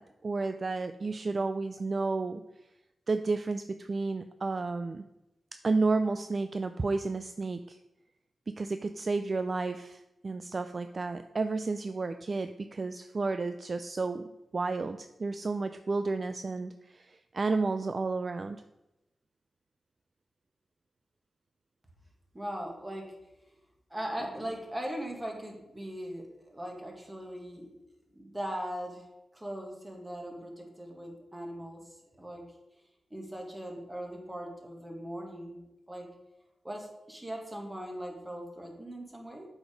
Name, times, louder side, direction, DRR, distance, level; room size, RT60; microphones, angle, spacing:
voice 1, 0.0-2.4 3.1-5.0 5.6-7.8 8.5-18.6, right 3 dB, 40° right, 9 dB, 0.3 m, -32 dB
voice 2, 22.3-23.1 23.9-27.8 28.1-29.0 29.3-32.4 33.1-35.6 35.9-36.1 36.6-39.5, equal, 15° right, 1 dB, 1.8 m, -39 dB
8.0 x 5.0 x 5.1 m, 0.93 s
wide cardioid pair, 95°, 0 cm